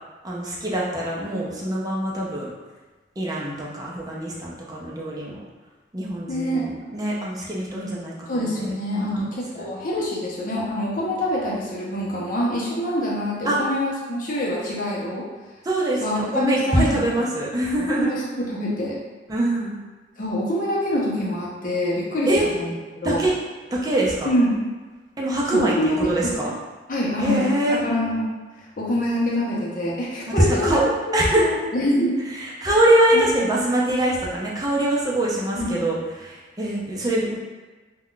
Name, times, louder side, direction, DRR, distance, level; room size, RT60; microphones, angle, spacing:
voice 1, 0.2-2.5 3.2-5.4 5.9-8.7 9.0-9.2 9.5-9.7 13.4-13.6 15.6-18.1 19.3-19.8 22.3-22.5 23.0-23.3 23.7-24.3 25.2-26.5 27.2-27.8 30.4-30.8 31.1-31.5 32.3-37.4, right 1 dB, 20° right, -4 dB, 0.5 m, -23 dB
voice 2, 6.3-6.6 8.3-15.2 16.0-17.3 17.8-19.0 20.2-22.3 22.5-23.3 24.2-24.6 25.5-25.9 26.2-26.3 26.9-28.3 28.8-30.8 31.1-32.2 33.1-33.3 35.5-35.8, equal, 45° left, -4 dB, 0.6 m, -25 dB
2.3 x 2.2 x 3.7 m, 1.3 s
head